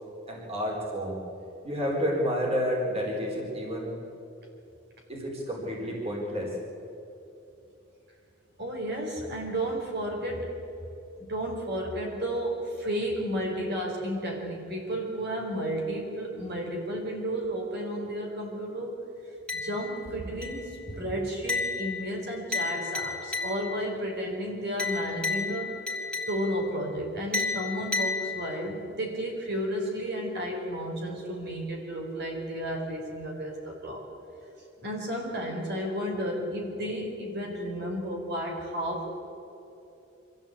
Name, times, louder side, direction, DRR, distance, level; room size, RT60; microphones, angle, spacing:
voice 1, 0.3-1.2 1.6-4.0 5.1-6.6 20.9-21.1, equal, 30° right, -2 dB, 4.2 m, -30 dB
voice 2, 8.6-10.5 11.2-18.9 19.5-25.7 26.3-34.0 34.8-39.1, equal, 55° right, 0 dB, 4.4 m, -32 dB
sound 1, 19.5-20.1 20.4-20.8 21.5-23.9 24.8-26.7 27.3-28.8, left 4 dB, 5° left, 2.6 m, -32 dB
25.5 x 15.0 x 8.5 m, 2.9 s
head